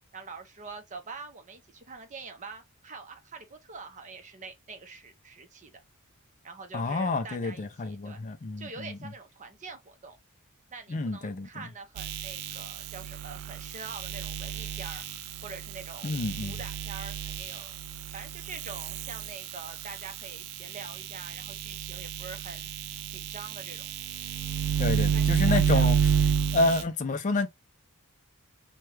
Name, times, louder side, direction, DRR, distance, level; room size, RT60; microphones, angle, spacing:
voice 1, 0.1-5.8 6.4-8.2 8.6-10.2 10.7-15.1 15.4-16.1 16.4-22.7 23.1-23.9 25.1-25.9, right 4 dB, 35° right, 0.6 m, -45 dB
voice 2, 6.7-9.0 10.9-11.5 16.0-16.6 24.8-26.0 26.5-27.5, left 2 dB, 35° left, 0.4 m, -29 dB
sound 1, 12.0-20.3 20.7-26.8, right 7 dB, 80° right, 0.4 m, -30 dB
2.9 x 2.2 x 3.2 m
head